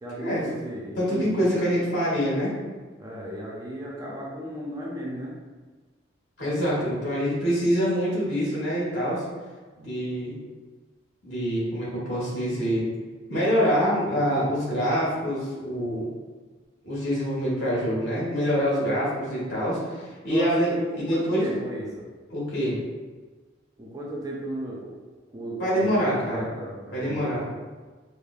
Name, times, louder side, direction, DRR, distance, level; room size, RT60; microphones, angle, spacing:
voice 1, 0.0-1.7 3.0-5.4 20.3-22.1 23.8-25.0 25.3-27.6, right 1 dB, 20° right, -4 dB, 0.4 m, -35 dB
voice 2, 1.0-2.5 6.4-9.2 9.8-10.3 11.2-12.9 13.3-16.1 16.8-21.5 22.3-22.8 25.6-26.5 26.9-27.5, equal, 65° left, -7 dB, 1.4 m, -25 dB
4.9 x 2.1 x 2.4 m, 1.4 s
head